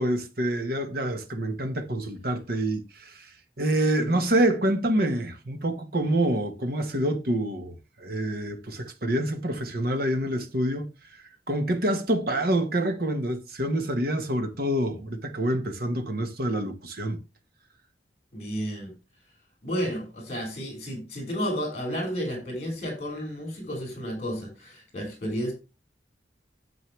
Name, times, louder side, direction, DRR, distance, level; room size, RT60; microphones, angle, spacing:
voice 1, 0.0-17.2, right 1 dB, 55° right, 1.5 m, -27 dB
voice 2, 18.3-18.9 19.6-25.5, equal, 35° left, 5.5 m, -32 dB
9.4 x 7.8 x 3.3 m
head